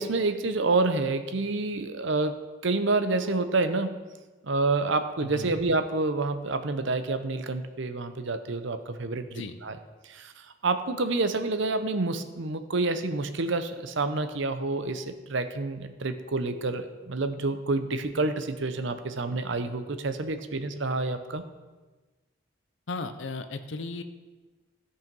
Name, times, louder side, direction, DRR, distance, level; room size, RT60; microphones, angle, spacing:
voice 1, 0.0-2.4 2.6-3.9 4.4-9.8 10.0-21.4, right 3 dB, 60° right, 9 dB, 0.7 m, -28 dB
voice 2, 5.2-5.6 9.3-9.6 22.9-24.0, left 3 dB, 60° left, 9 dB, 0.7 m, -35 dB
13.5 x 5.6 x 5.4 m, 1.3 s
head